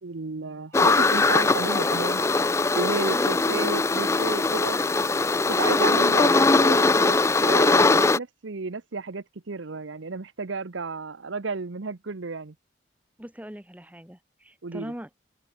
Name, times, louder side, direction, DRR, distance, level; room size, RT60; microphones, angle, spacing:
voice 1, 0.0-2.2 2.7-4.8 5.5-12.5 14.6-14.9, right 4 dB, 80° right, 0.8 m, -32 dB
sound 1, 0.7-8.2, left 3 dB, 15° left, 0.3 m, -21 dB
voice 2, 3.1-3.7 5.8-6.5 13.2-15.1, equal, 10° right, 1.6 m, -41 dB
head